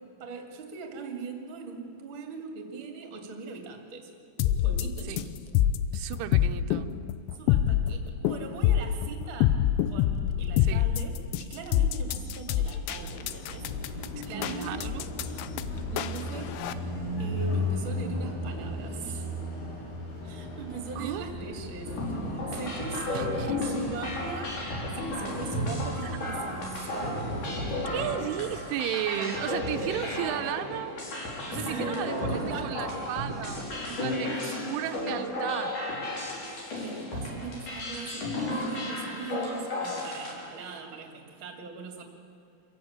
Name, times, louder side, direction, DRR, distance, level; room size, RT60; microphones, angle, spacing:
voice 1, 0.0-4.1 4.4-5.3 7.3-14.9 15.3-15.5 15.9-16.6 17.2-19.3 20.2-23.4 23.6-24.6 24.9-28.4 29.1-30.6 31.5-33.1 34.3-34.8 36.7-42.0, right 4 dB, 35° right, 2.5 m, -40 dB
sound 1, 4.4-16.7, left 11 dB, 80° left, 3.0 m, -26 dB
voice 2, 5.9-6.9 10.6-10.9 14.3-15.0 21.0-21.3 23.1-23.6 26.0-26.1 27.9-30.9 31.5-34.4 34.7-35.8, right 13 dB, 90° right, 3.3 m, -34 dB
Car passing by, 12.9-27.8, left 1 dB, 60° left, 5.8 m, -37 dB
sound 2, 21.9-40.3, left 1 dB, 45° left, 5.3 m, -33 dB
26.5 x 15.0 x 8.8 m
omnidirectional pair, 5.4 m